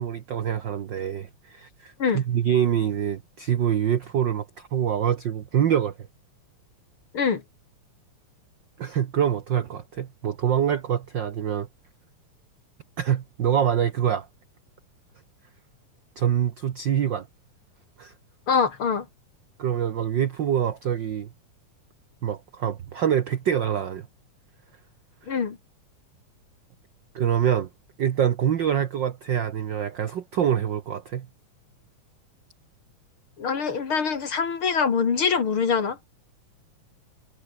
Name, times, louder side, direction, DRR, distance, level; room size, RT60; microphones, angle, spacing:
voice 1, 0.0-5.9 8.8-11.7 13.0-14.3 16.2-17.3 18.0-18.1 19.6-21.3 22.2-24.1 27.1-27.7 28.0-31.3, right 9 dB, 65° right, 1.1 m, -25 dB
voice 2, 18.5-19.1 25.3-25.6 33.4-36.0, left 6 dB, 45° left, 2.9 m, -24 dB
omnidirectional pair, 3.5 m